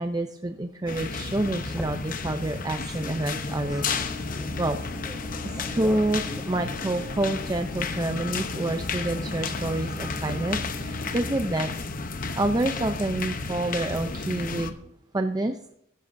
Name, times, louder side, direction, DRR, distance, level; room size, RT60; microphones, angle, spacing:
voice 1, 0.0-3.9 4.6-4.8 5.4-11.7 12.4-14.7 15.1-15.6, right 2 dB, 20° right, 7 dB, 0.5 m, -28 dB
sound 1, 0.9-14.7, left 4 dB, 40° left, 0.8 m, -32 dB
sound 2, 1.5-7.4, equal, 5° right, 1.3 m, -43 dB
sound 3, 3.6-11.4, left 3 dB, 55° right, 1.8 m, -43 dB
15.0 x 11.0 x 2.6 m, 0.76 s
head